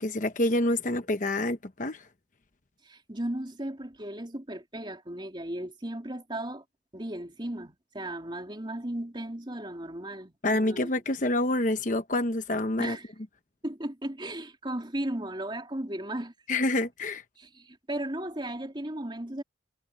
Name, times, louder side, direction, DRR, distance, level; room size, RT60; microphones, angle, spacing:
voice 1, 0.0-2.0 10.4-13.0 16.5-17.2, left 1 dB, 45° left, 1.0 m, -27 dB
voice 2, 2.8-6.6 6.9-10.9 12.8-13.1 13.6-16.3 17.4-19.4, right 1 dB, 25° right, 3.3 m, -36 dB
head